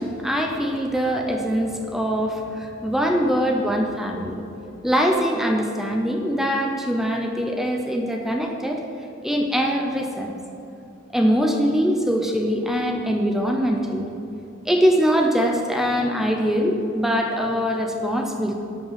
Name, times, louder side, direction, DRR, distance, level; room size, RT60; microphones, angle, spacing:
voice 1, 0.0-4.4 4.8-8.8 9.2-10.3 11.1-14.1 14.6-18.6, equal, ahead, 2 dB, 0.8 m, -22 dB
11.5 x 5.4 x 7.5 m, 2.6 s
head